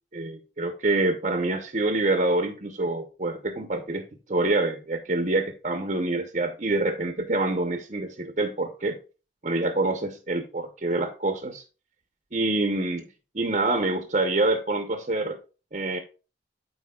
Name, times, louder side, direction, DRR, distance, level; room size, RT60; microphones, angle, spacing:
voice 1, 0.1-4.0 4.3-9.0 9.4-11.6 12.3-13.1 13.3-15.4 15.7-16.0, right 2 dB, 40° right, 0.9 m, -26 dB
13.0 x 4.5 x 2.4 m
head